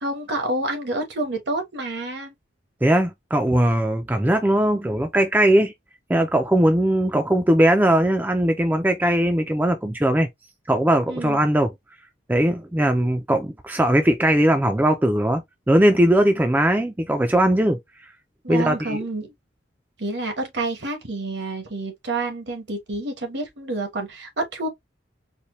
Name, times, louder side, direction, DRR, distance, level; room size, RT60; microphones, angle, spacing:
voice 1, 0.0-2.3 11.1-11.4 18.4-19.3 20.0-24.7, right 2 dB, 65° right, 1.1 m, -28 dB
voice 2, 2.8-5.7 6.1-10.3 10.7-11.7 12.3-15.4 15.7-17.8 18.5-19.0, right 1 dB, 10° right, 0.3 m, -19 dB
4.2 x 2.2 x 3.0 m
head